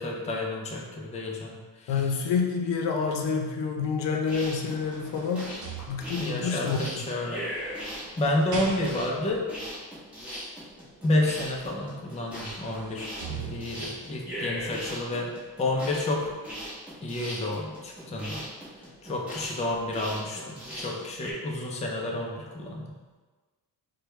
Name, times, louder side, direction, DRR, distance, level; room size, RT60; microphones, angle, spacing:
voice 1, 0.0-2.1 6.2-7.9 8.2-9.4 11.0-15.3 15.6-16.3 17.0-18.4 19.0-22.9, left 1 dB, 15° left, -1 dB, 0.4 m, -30 dB
voice 2, 1.9-5.5 5.9-6.8, left 5 dB, 90° left, 2 dB, 0.7 m, -28 dB
sound 1, 4.3-21.3, equal, 5° right, 1.0 m, -39 dB
sound 2, 4.5-6.5 7.3-9.3 11.5-11.6 12.0-14.0 14.6-14.7, right 4 dB, 45° right, 0.7 m, -42 dB
4.6 x 2.3 x 3.1 m, 1.3 s
cardioid pair, 155°, 42 cm